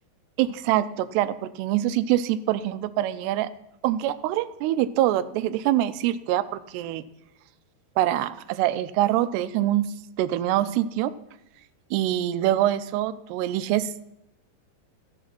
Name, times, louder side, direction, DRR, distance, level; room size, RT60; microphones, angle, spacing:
voice 1, 0.4-3.5 3.8-7.0 8.0-9.8 10.2-11.1 11.9-13.9, right 13 dB, 90° right, 14 dB, 2.7 m, -24 dB
14.5 x 7.2 x 5.9 m, 0.83 s
omnidirectional pair, 4.7 m